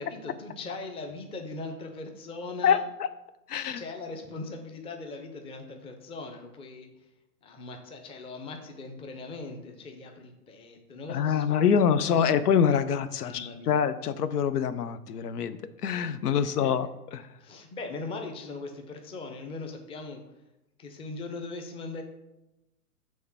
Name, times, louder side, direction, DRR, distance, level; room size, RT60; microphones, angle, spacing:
voice 1, 0.0-2.8 3.7-7.1 7.4-11.7 12.2-12.4 13.2-13.7 16.4-16.7 17.4-20.2 20.8-22.0, left 3 dB, 10° left, 4 dB, 0.6 m, -40 dB
voice 2, 2.6-3.1 3.5-3.8 11.1-16.9 17.1-17.3, left 7 dB, 75° left, 12 dB, 0.7 m, -25 dB
6.4 x 3.5 x 5.9 m, 0.95 s
hypercardioid pair, 120°, 46 cm